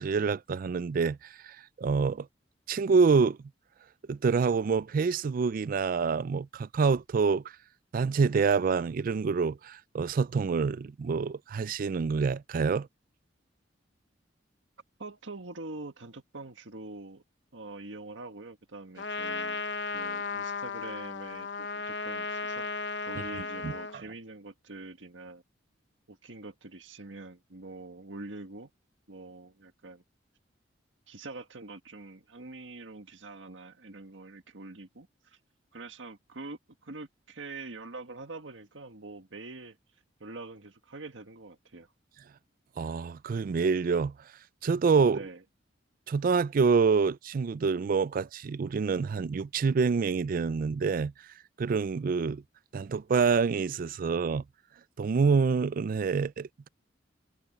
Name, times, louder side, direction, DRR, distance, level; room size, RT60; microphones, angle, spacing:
voice 1, 0.0-2.3 2.7-3.4 4.1-7.4 7.9-12.9 23.6-23.7 42.8-44.1 44.6-45.2 46.1-51.1 51.6-52.4 52.7-54.4 55.0-56.7, right 5 dB, 50° right, 0.4 m, -26 dB
voice 2, 15.0-17.2 17.5-19.6 19.9-22.7 23.1-25.4 26.1-28.7 29.1-30.0 31.1-35.4 35.7-39.8 40.2-41.9 45.0-45.4, right 2 dB, 90° right, 1.7 m, -44 dB
Trumpet, 19.0-24.0, left 4 dB, 70° left, 0.9 m, -35 dB
head